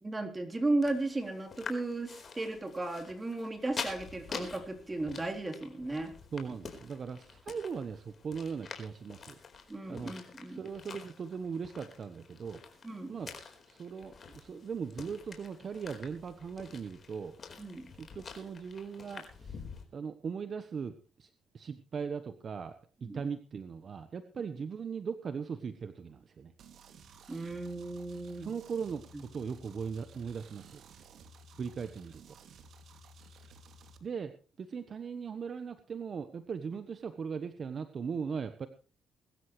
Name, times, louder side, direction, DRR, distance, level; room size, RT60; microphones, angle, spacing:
voice 1, 0.0-6.1 9.7-10.6 12.8-13.2 17.6-17.9 23.0-23.2 27.3-28.5 29.1-29.2 36.7-36.8, right 2 dB, 20° right, 4 dB, 3.7 m, -35 dB
sound 1, 0.8-19.8, left 5 dB, 45° left, 4.3 m, -47 dB
voice 2, 6.3-9.4 9.9-10.1 10.5-12.6 13.1-13.3 13.7-17.3 17.9-19.6 19.9-21.3 21.5-22.7 23.0-26.5 28.4-30.8 31.6-32.4 34.0-34.3 34.6-38.7, right 6 dB, 50° right, 11 dB, 1.1 m, -39 dB
sound 2, 26.6-34.0, right 2 dB, 65° right, 2.5 m, -55 dB
22.0 x 13.0 x 3.2 m, 0.38 s
cardioid pair, 90°, 0 cm